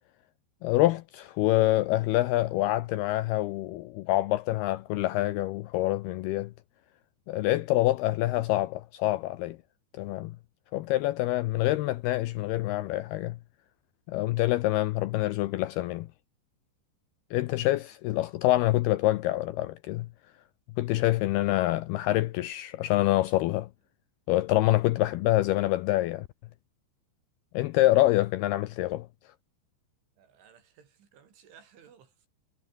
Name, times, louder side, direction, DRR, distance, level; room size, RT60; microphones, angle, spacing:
voice 1, 0.6-6.5 7.3-9.6 10.0-10.3 10.7-13.4 14.1-16.1 17.3-20.1 20.8-23.7 24.3-26.3 27.5-29.1, left 16 dB, 80° left, 2.3 m, -26 dB
voice 2, 30.2-32.3, right 8 dB, 85° right, 6.5 m, -57 dB
omnidirectional pair, 5.3 m